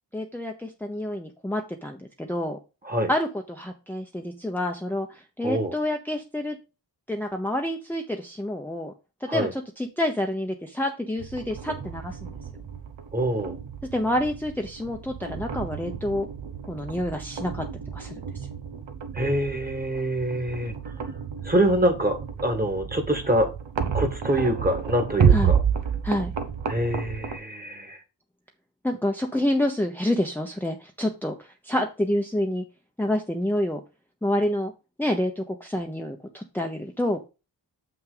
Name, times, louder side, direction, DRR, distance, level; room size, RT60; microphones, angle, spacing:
voice 1, 0.1-2.6 3.1-6.6 7.1-8.9 9.2-12.3 13.8-16.3 16.6-17.7 17.9-18.2 25.3-25.5 26.0-26.3 28.8-32.6 33.0-33.8 34.2-34.7 35.0-37.2, left 1 dB, 5° left, 2 dB, 0.8 m, -28 dB
voice 2, 5.4-5.7 9.3-9.5 13.1-13.5 19.1-20.7 21.4-23.5 23.9-25.6 26.7-28.0, right 1 dB, 20° right, 6 dB, 1.7 m, -25 dB
sound 1, 11.2-27.4, right 7 dB, 80° right, 1.2 m, -30 dB
7.3 x 5.9 x 3.9 m, 0.29 s
wide cardioid pair, 115°, 43 cm